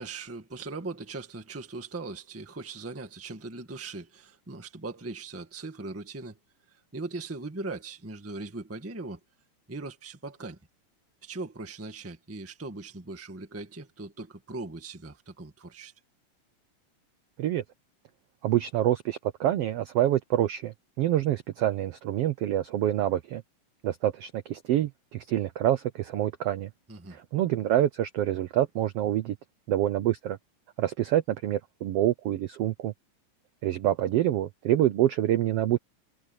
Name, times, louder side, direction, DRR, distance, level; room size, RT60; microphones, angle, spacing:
voice 1, 0.0-6.4 6.7-9.2 9.7-10.6 11.2-15.9 26.9-27.2, right 3 dB, 10° right, 0.7 m, -39 dB
voice 2, 18.4-23.4 23.8-26.7 27.1-29.4 29.7-30.4 30.8-32.9 33.6-35.8, right 12 dB, 75° right, 1.4 m, -26 dB
omnidirectional pair, 3.7 m